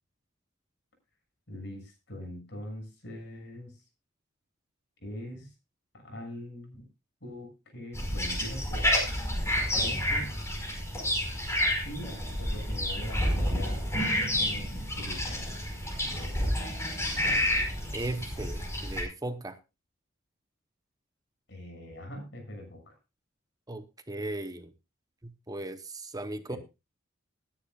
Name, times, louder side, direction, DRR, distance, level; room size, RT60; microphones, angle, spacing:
voice 1, 1.5-3.8 5.0-5.5 6.0-6.8 7.2-8.9 9.7-10.4 11.8-15.4 16.0-16.5 21.5-22.9 26.5-26.6, equal, 60° left, 4 dB, 6.7 m, -42 dB
sound 1, 7.9-19.0, equal, 15° left, 5.1 m, -29 dB
voice 2, 17.9-19.6 23.7-24.7 25.2-26.6, right 2 dB, 20° right, 10 dB, 0.9 m, -37 dB
20.0 x 10.5 x 2.4 m, 0.26 s
head